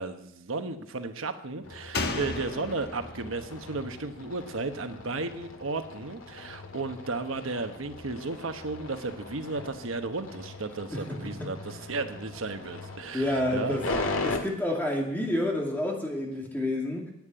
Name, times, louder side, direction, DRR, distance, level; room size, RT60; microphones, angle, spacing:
voice 1, 0.0-13.8, right 3 dB, 80° right, 8 dB, 1.0 m, -34 dB
sound 1, 1.6-14.4, left 2 dB, 85° left, 1.8 m, -39 dB
Slam, 1.9-5.4 5.7-5.8, left 3 dB, 50° left, 1.2 m, -36 dB
voice 2, 10.9-11.5 13.1-13.8 14.2-17.1, left 1 dB, 10° left, 0 dB, 2.4 m, -29 dB
10.5 x 9.3 x 8.9 m, 0.80 s
head